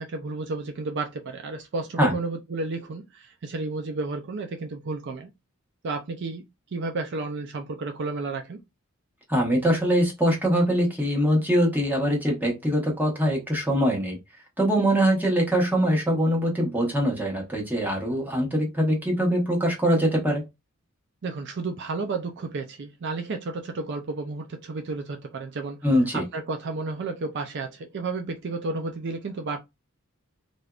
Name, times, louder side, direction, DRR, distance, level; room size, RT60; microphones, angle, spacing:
voice 1, 0.0-5.3 5.8-6.4 6.7-8.6 21.2-25.8 26.1-29.6, right 3 dB, 55° right, 0.4 m, -32 dB
voice 2, 9.3-14.2 14.6-20.4 25.8-26.2, equal, 10° right, 1.1 m, -23 dB
3.3 x 2.6 x 2.3 m
head